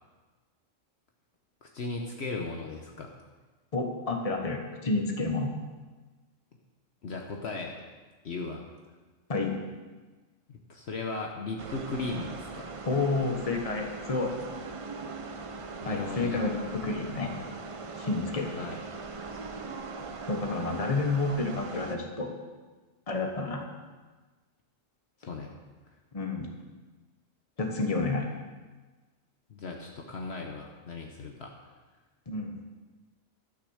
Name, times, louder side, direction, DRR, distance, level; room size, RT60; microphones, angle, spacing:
voice 1, 1.6-3.1 7.0-7.7 8.2-8.6 10.5-12.7 15.8-16.4 18.6-18.8 25.3-25.5 29.5-31.5, left 3 dB, 60° left, 1 dB, 1.2 m, -36 dB
voice 2, 3.7-5.5 9.3-9.6 12.9-14.3 15.8-17.3 17.9-18.5 20.3-22.3 23.1-23.6 26.1-26.5 27.6-28.3 32.3-32.5, left 3 dB, 30° left, 2 dB, 1.3 m, -30 dB
sound 1, 11.6-22.0, right 4 dB, 40° right, 0.5 m, -40 dB
12.0 x 6.3 x 6.5 m, 1.3 s
omnidirectional pair, 1.3 m